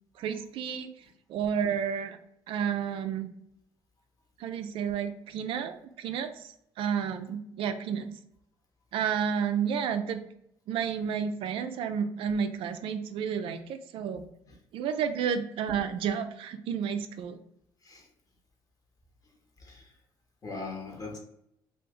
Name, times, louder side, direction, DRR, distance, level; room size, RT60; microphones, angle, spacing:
voice 1, 0.2-0.9 1.3-2.2 2.5-3.3 4.4-8.1 8.9-10.2 10.7-14.2 14.7-17.4, right 7 dB, 65° right, 8 dB, 0.3 m, -31 dB
voice 2, 20.4-21.2, left 3 dB, 40° left, 1 dB, 1.0 m, -40 dB
2.6 x 2.4 x 3.6 m, 0.76 s
supercardioid pair, 75°, 10 cm